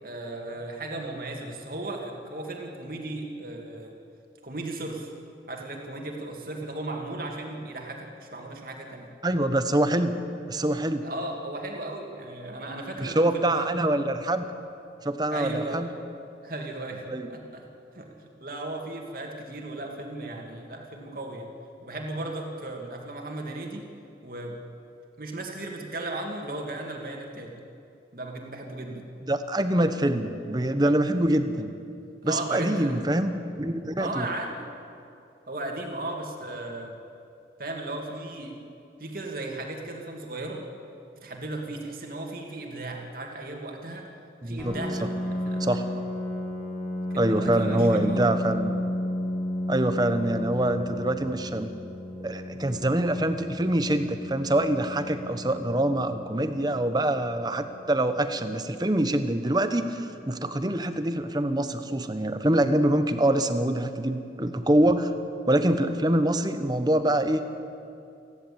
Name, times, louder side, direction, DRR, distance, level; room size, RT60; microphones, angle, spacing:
voice 1, 0.0-3.9 4.4-5.1 5.5-9.1 11.0-13.7 15.3-15.8 16.4-17.6 17.9-21.5 21.8-23.8 24.2-24.6 25.2-27.5 28.1-29.0 29.8-29.9 32.2-33.0 34.0-34.6 35.5-36.9 37.6-38.6 39.0-40.6 41.2-44.1 44.4-45.8 47.1-48.4, right 2 dB, 55° right, 1 dB, 2.6 m, -36 dB
voice 2, 9.2-10.2 10.5-11.1 13.0-14.4 15.0-15.9 17.1-17.3 29.3-31.7 32.2-34.3 44.4-44.7 45.6-45.8 47.2-48.8 49.7-51.7 52.2-65.1 65.5-67.4, right 1 dB, 25° right, 9 dB, 1.0 m, -25 dB
Piano, 44.6-60.0, left 1 dB, 15° left, 5.2 m, -34 dB
29.0 x 11.5 x 8.7 m, 2.6 s
head